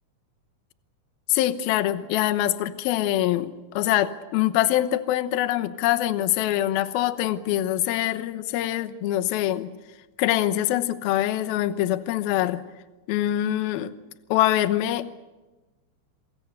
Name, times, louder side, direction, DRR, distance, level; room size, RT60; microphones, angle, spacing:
voice 1, 1.3-9.7 10.2-12.6 13.1-13.9 14.3-15.1, left 13 dB, 70° left, 11 dB, 2.4 m, -24 dB
27.5 x 24.5 x 6.8 m, 1.1 s
omnidirectional pair, 5.4 m